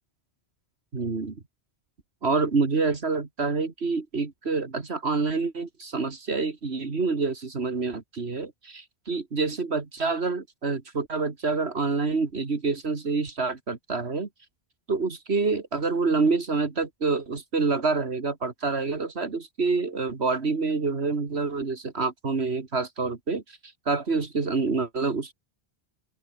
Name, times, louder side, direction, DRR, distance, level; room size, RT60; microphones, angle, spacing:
voice 1, 0.9-1.4 2.2-14.3 14.9-25.3, right 4 dB, 80° right, 2.4 m, -27 dB
open air
omnidirectional pair, 1.1 m